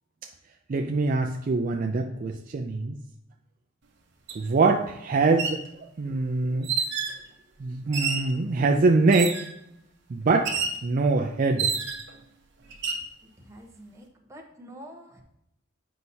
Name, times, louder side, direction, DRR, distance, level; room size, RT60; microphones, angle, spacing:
voice 1, 0.7-2.9 4.3-6.7 7.6-9.4 10.1-10.5 10.8-11.7, right 3 dB, 45° right, 3 dB, 0.4 m, -24 dB
sound 1, 4.3-4.4 5.2-5.6 6.6-7.2 7.9-8.3 9.1-9.5 10.5-10.8 11.6-12.2 12.7-13.1, right 5 dB, 60° right, 0.9 m, -29 dB
voice 2, 13.2-15.2, equal, 15° right, 1 dB, 0.9 m, -47 dB
7.9 x 5.5 x 2.7 m, 0.80 s
head